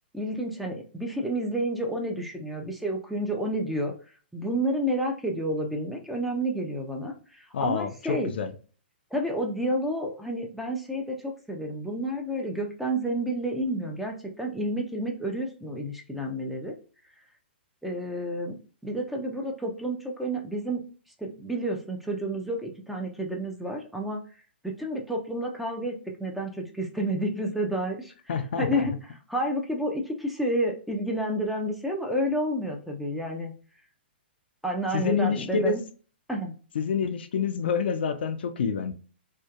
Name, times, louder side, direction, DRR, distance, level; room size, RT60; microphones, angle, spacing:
voice 1, 0.1-3.9 4.3-8.3 9.1-16.7 17.8-18.6 18.8-20.8 21.2-24.2 24.6-28.1 28.6-28.9 29.3-33.5 34.6-35.8 36.3-36.5, right 1 dB, ahead, 0.4 m, -30 dB
voice 2, 7.5-8.5 28.3-28.9 34.9-35.8 36.7-38.9, left 5 dB, 65° left, 0.4 m, -27 dB
2.6 x 2.1 x 2.3 m
hypercardioid pair, 125°, 6 cm